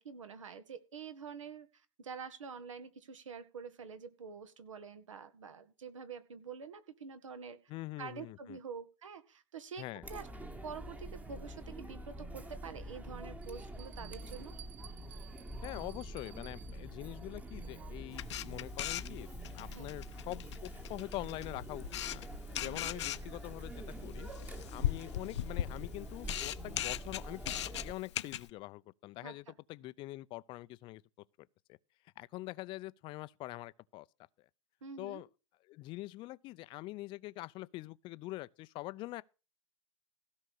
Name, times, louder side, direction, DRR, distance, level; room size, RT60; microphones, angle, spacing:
voice 1, 0.0-1.7 2.0-7.6 8.0-10.3 10.6-14.6 19.7-19.9 22.6-22.9 29.2-29.5 34.8-35.2, right 6 dB, 75° right, 2.0 m, -47 dB
voice 2, 7.7-8.6 9.8-10.1 15.6-21.9 22.1-22.2 22.6-24.3 24.7-31.0 31.4-31.8 32.2-34.1 35.0-35.3 35.7-39.2, left 18 dB, 30° left, 0.6 m, -44 dB
Chatter, 10.0-27.9, right 1 dB, 10° right, 1.3 m, -46 dB
Bell, 13.4-18.0, right 14 dB, 40° right, 1.1 m, -57 dB
Camera, 18.1-28.5, left 12 dB, 60° left, 0.8 m, -39 dB
16.0 x 5.4 x 6.5 m
hypercardioid pair, 115°, 16 cm